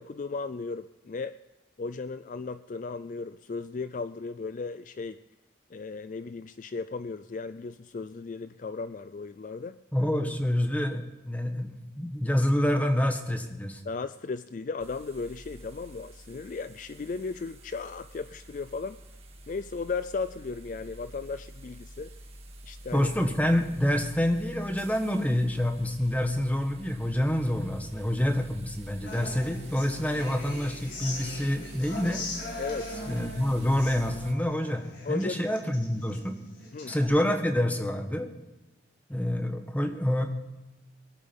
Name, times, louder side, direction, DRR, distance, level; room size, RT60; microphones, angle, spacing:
voice 1, 0.0-1.4 1.8-5.2 5.7-9.8 13.8-19.0 19.5-22.1 22.6-23.1 32.6-33.0 35.0-35.5 36.7-36.9, left 4 dB, 45° left, 13 dB, 0.4 m, -36 dB
voice 2, 9.9-13.8 22.9-32.2 33.1-36.4 36.8-38.3 39.1-40.3, left 1 dB, 10° left, 5 dB, 1.4 m, -27 dB
sound 1, 14.8-34.3, right 1 dB, 35° right, 1.8 m, -48 dB
Human voice / Acoustic guitar, 29.1-37.0, left 2 dB, 85° left, 4.3 m, -41 dB
23.0 x 8.7 x 5.3 m, 1.1 s
head